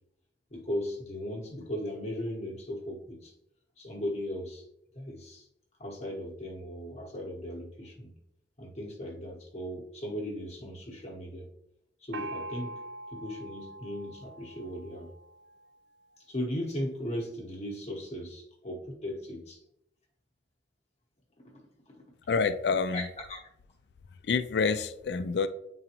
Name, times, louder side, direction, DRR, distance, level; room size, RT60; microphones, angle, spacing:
voice 1, 0.5-3.3 3.8-4.6 4.9-5.4 5.8-8.1 8.6-11.5 12.0-12.8 13.1-15.1 16.3-19.6 21.4-21.6 21.9-22.1 22.9-23.5, equal, 35° left, -3 dB, 1.0 m, -37 dB
Gong, 12.1-15.6, right 2 dB, 65° right, 0.4 m, -43 dB
voice 2, 22.3-23.1 24.2-25.5, left 5 dB, 60° left, 11 dB, 0.4 m, -27 dB
8.9 x 3.9 x 2.9 m, 0.82 s
head